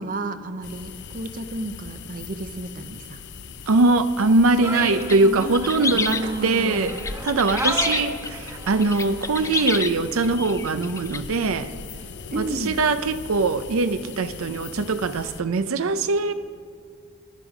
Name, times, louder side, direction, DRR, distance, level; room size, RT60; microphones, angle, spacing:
voice 1, 0.0-3.2 4.6-5.6 5.9-7.0 12.3-12.8, right 2 dB, 40° right, 10 dB, 0.7 m, -32 dB
sound 1, 0.6-15.4, left 5 dB, 55° left, 0.7 m, -40 dB
voice 2, 3.7-7.0 7.2-11.7 12.4-16.3, right 3 dB, 75° right, 11 dB, 0.6 m, -22 dB
sound 2, 4.6-9.8, right 2 dB, 15° right, 1.2 m, -34 dB
sound 3, 4.8-11.2, left 4 dB, 15° left, 0.4 m, -29 dB
18.5 x 12.5 x 5.0 m, 2.2 s
head